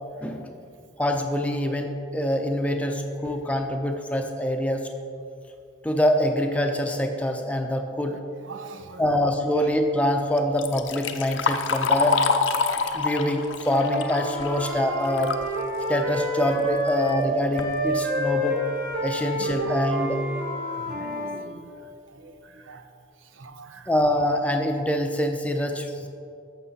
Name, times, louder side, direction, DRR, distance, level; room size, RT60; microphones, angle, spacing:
voice 1, 0.2-0.5 1.0-4.9 5.8-8.2 9.0-12.2 12.9-15.4 15.9-18.6 19.0-20.2 23.9-26.1, left 1 dB, 5° left, 4 dB, 0.6 m, -25 dB
voice 2, 8.5-9.1 19.6-19.8 20.9-21.7 22.1-22.3 22.7-22.9 23.4-23.9, right 3 dB, 90° right, 7 dB, 0.7 m, -41 dB
Liquid, 10.4-15.5 15.9-16.0 16.9-17.0 17.4-17.7 18.3-18.4 18.9-19.0 19.5-19.7, left 4 dB, 85° left, 0.6 m, -26 dB
Wind instrument woodwind instrument, 13.6-17.2 17.5-21.4, equal, 45° right, 1.5 m, -29 dB
11.5 x 7.2 x 4.2 m, 2.5 s
head